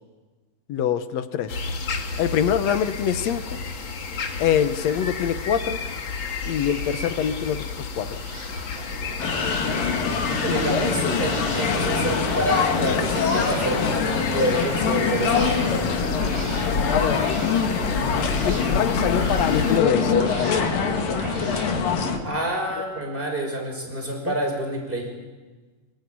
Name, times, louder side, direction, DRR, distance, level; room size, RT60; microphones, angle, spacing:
voice 1, 0.7-1.6 2.2-3.6 4.4-5.8 6.5-8.2 16.9-17.3 18.4-20.7 24.3-24.4, left 9 dB, 65° left, 10 dB, 2.0 m, -25 dB
sound 1, 1.5-19.8, left 4 dB, 40° left, 2.3 m, -31 dB
sound 2, 7.1-22.2, right 2 dB, 70° right, 5.5 m, -36 dB
sound 3, 9.2-22.2, left 6 dB, 85° left, 3.8 m, -24 dB
voice 2, 10.4-15.9 22.2-25.1, right 1 dB, 15° right, 2 dB, 5.9 m, -28 dB
26.0 x 23.0 x 9.5 m, 1.3 s
omnidirectional pair, 3.8 m